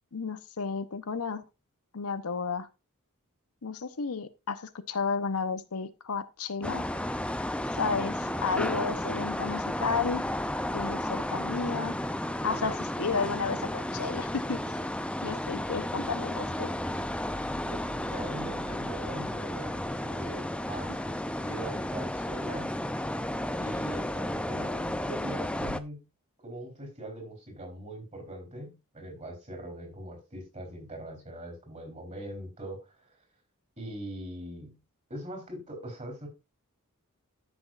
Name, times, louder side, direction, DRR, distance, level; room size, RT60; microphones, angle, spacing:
voice 1, 0.1-1.4 1.9-2.7 3.6-6.9 7.8-10.2 10.7-11.9 12.4-14.6 15.2-16.7 20.9-21.0, left 5 dB, 80° left, 0.9 m, -32 dB
sound 1, 6.6-25.8, left 1 dB, 5° left, 0.5 m, -33 dB
voice 2, 17.5-22.8 23.6-26.0 26.4-33.1 33.8-34.8 35.1-36.3, right 1 dB, 35° right, 3.9 m, -41 dB
13.5 x 6.2 x 2.5 m
head